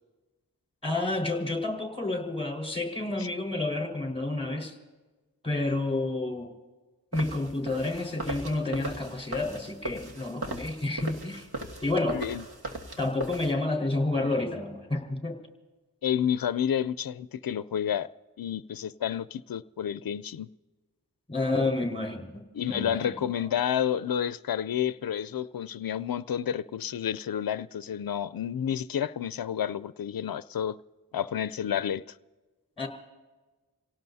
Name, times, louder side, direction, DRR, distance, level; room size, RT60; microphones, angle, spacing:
voice 1, 0.8-4.7 5.4-6.5 7.1-11.5 11.8-12.2 13.0-15.4 21.3-22.4 22.7-23.1 32.8-32.9, left 2 dB, 15° left, 4.5 m, -29 dB
sound 1, 7.1-13.5, right 2 dB, 80° right, 1.8 m, -38 dB
voice 2, 11.9-12.4 16.0-18.1 18.4-20.5 22.5-30.8 31.1-32.0, left 9 dB, 70° left, 0.5 m, -30 dB
29.0 x 17.5 x 2.7 m
wide cardioid pair, 40°, 37 cm